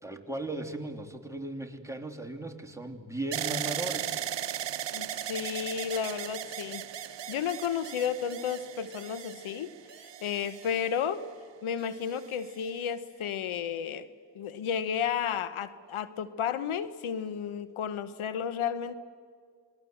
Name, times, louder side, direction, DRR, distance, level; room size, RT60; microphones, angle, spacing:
voice 1, 0.0-4.3, right 2 dB, 5° right, 3 dB, 3.2 m, -37 dB
sound 1, 3.3-11.3 12.0-12.7, right 10 dB, 60° right, 0.9 m, -37 dB
voice 2, 4.9-11.2 11.6-14.1 14.3-18.9, left 8 dB, 85° left, 14 dB, 1.1 m, -33 dB
27.5 x 20.5 x 7.9 m, 2.1 s
cardioid pair, 50°, 48 cm